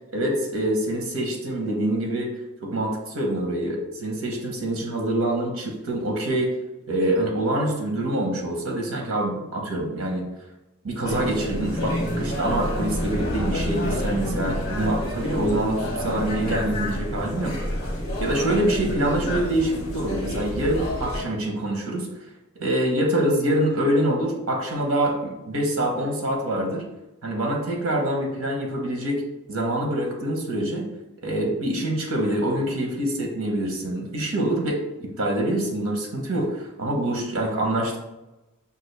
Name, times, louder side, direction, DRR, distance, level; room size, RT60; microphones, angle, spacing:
voice 1, 0.1-2.3 2.6-6.5 6.9-10.2 10.8-17.8 18.2-22.1 22.5-26.8 27.2-29.2 29.5-30.8 31.2-38.0, right 1 dB, 80° right, 1 dB, 1.0 m, -25 dB
sound 1, 11.0-21.2, equal, 50° left, 1.1 m, -28 dB
5.2 x 2.4 x 3.3 m, 1.0 s
head